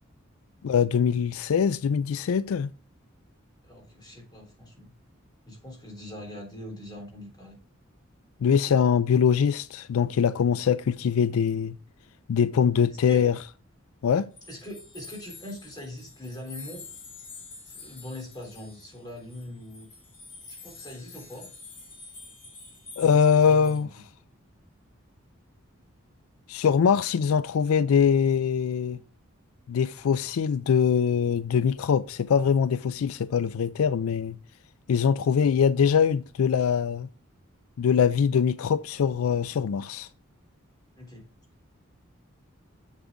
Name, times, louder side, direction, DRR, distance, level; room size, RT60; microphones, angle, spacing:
voice 1, 0.6-2.7 8.4-11.7 12.3-13.4 14.0-14.3 23.0-23.9 26.5-29.0 29.7-34.4 34.9-37.1 37.8-40.1, left 7 dB, 80° left, 0.4 m, -23 dB
voice 2, 3.6-4.9 5.5-7.6 12.9-13.2 14.5-16.8 17.6-19.9 20.6-21.5 23.0-23.9 41.0-41.2, left 1 dB, 20° left, 3.4 m, -42 dB
sound 1, 14.4-23.8, left 3 dB, 35° left, 2.6 m, -47 dB
7.4 x 7.1 x 3.6 m
head